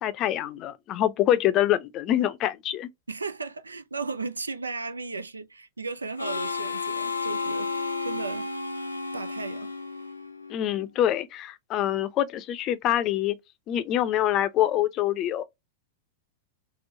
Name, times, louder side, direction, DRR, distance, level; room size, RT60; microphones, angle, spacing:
voice 1, 0.0-2.9 10.5-13.4 13.7-15.4, left 12 dB, 35° left, 0.5 m, -25 dB
voice 2, 3.1-8.5 9.1-9.7, right 4 dB, 85° right, 0.3 m, -35 dB
Harmonica, 6.2-10.6, left 4 dB, 90° left, 0.5 m, -32 dB
3.7 x 2.0 x 2.6 m
figure-of-eight pair, 95°, 0 cm